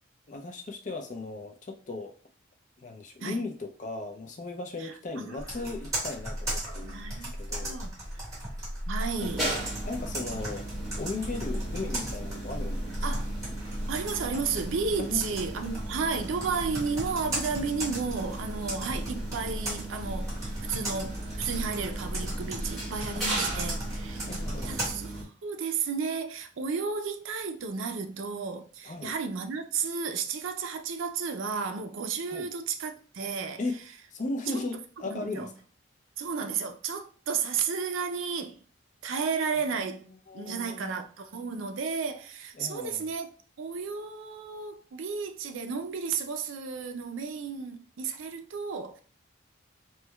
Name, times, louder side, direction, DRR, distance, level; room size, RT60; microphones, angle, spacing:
voice 1, 0.3-2.2 2.8-7.8 9.8-10.7 11.0-13.0 15.0-15.3 23.1-23.8 24.3-24.8 28.8-29.1 32.3-32.5 33.6-33.8 34.1-35.5 39.7-39.9 40.3-41.0 42.5-43.1, left 3 dB, 40° left, 0.4 m, -37 dB
Computer keyboard, 5.4-24.9, right 1 dB, 15° right, 1.5 m, -36 dB
voice 2, 6.8-7.3 7.6-8.0 8.9-9.5 13.0-13.3 13.9-24.3 24.6-33.6 34.5-34.6 35.1-35.5 36.2-38.6 39.0-40.1 40.3-43.3 43.6-49.0, right 5 dB, 80° right, 0.5 m, -33 dB
sound 1, 9.2-25.2, right 1 dB, ahead, 1.2 m, -37 dB
4.5 x 2.2 x 2.2 m
head